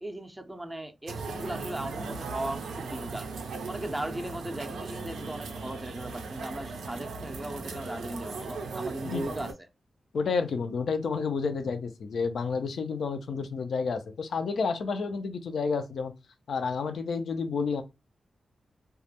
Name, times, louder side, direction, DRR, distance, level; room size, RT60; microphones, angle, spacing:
voice 1, 0.0-3.3 3.7-9.5, right 1 dB, 15° right, 0.4 m, -37 dB
sound 1, 1.1-9.5, right 4 dB, 90° right, 0.4 m, -38 dB
voice 2, 10.1-16.1 16.5-17.8, left 5 dB, 75° left, 0.4 m, -30 dB
2.2 x 2.0 x 2.7 m
cardioid pair, 45°, 0 cm